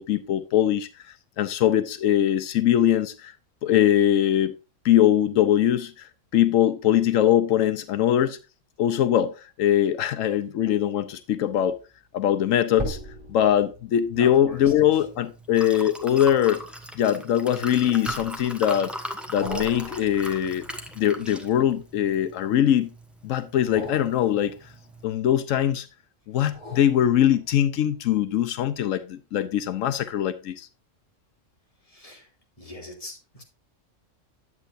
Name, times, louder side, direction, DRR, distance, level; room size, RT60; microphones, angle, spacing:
voice 1, 0.0-3.3 3.6-4.5 4.8-8.4 8.8-11.8 12.1-13.0 13.3-16.6 17.0-18.9 19.3-20.7 21.0-22.9 23.2-24.5 25.0-25.9 26.3-30.7, left 11 dB, 90° left, 1.1 m, -22 dB
sound 1, 11.5-11.8 12.7-17.4 18.1-18.7 19.4-22.3 23.5-25.6 26.4-27.8 28.3-28.4, right 1 dB, 35° right, 3.8 m, -41 dB
voice 2, 14.1-14.6 31.9-32.3 32.6-33.4, left 1 dB, 25° left, 3.0 m, -41 dB
Liquid, 14.5-25.0, equal, ahead, 1.1 m, -39 dB
11.0 x 7.9 x 2.5 m
omnidirectional pair, 1.3 m